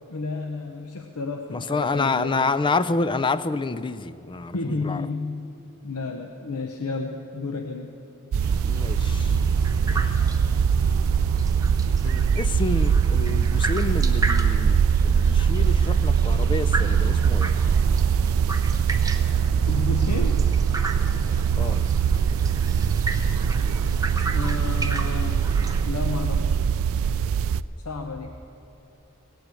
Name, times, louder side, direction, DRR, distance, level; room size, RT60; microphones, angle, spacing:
voice 1, 0.1-2.5 4.5-5.4 5.8-7.9 19.7-20.4 24.3-25.4 25.8-26.7 27.8-28.3, left 3 dB, 80° left, 4 dB, 0.8 m, -31 dB
voice 2, 1.5-5.1 8.7-9.4 9.9-10.2 12.0-17.6 21.6-21.9, left 3 dB, 20° left, 14 dB, 0.4 m, -28 dB
sound 1, 8.3-27.6, right 7 dB, 65° right, 0.3 m, -22 dB
sound 2, 8.4-25.9, right 2 dB, 15° right, 0.7 m, -35 dB
17.5 x 8.1 x 8.3 m, 3.0 s
head